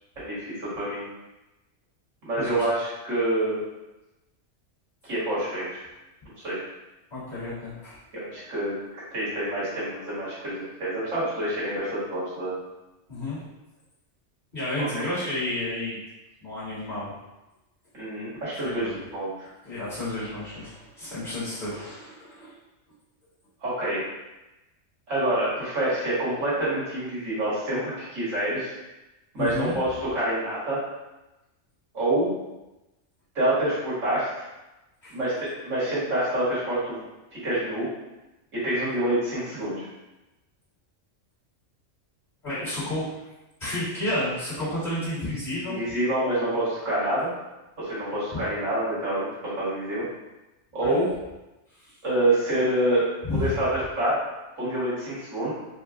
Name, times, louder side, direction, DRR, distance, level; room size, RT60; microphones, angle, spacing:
voice 1, 0.2-1.0 2.2-3.6 5.0-5.9 6.4-6.6 8.1-8.7 9.1-12.5 14.8-14.9 17.9-19.5 23.6-24.0 25.1-28.8 29.3-30.8 31.9-32.3 33.4-34.4 35.1-37.0 37.3-37.9 38.5-39.9 45.7-47.3 47.8-50.0 50.7-51.1 52.0-53.7 54.0-54.2 54.6-55.5, right 1 dB, 80° right, -9 dB, 1.9 m, -27 dB
voice 2, 2.3-2.6 7.1-8.0 13.1-13.4 14.5-16.0 16.4-17.1 18.6-19.0 19.6-22.5 29.4-29.8 35.0-35.1 42.4-43.1 43.6-45.8 48.3-48.4 50.8-51.0 51.8-52.0 53.3-53.5, left 1 dB, 35° left, -12 dB, 1.7 m, -31 dB
4.5 x 2.1 x 2.5 m, 1.0 s
omnidirectional pair, 1.3 m